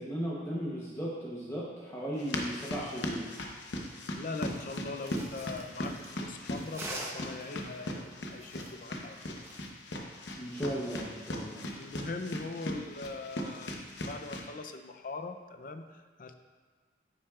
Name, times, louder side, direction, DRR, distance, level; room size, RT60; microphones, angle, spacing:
voice 1, 0.0-3.2 10.4-11.7, equal, 15° left, -6 dB, 0.8 m, -36 dB
sound 1, 2.2-14.5, left 1 dB, 80° left, 0.9 m, -39 dB
voice 2, 4.1-9.4 11.4-16.3, left 3 dB, 50° left, 7 dB, 0.5 m, -41 dB
sound 2, 4.5-9.6, right 1 dB, 15° right, 0.8 m, -45 dB
9.4 x 8.7 x 2.4 m, 1.5 s
head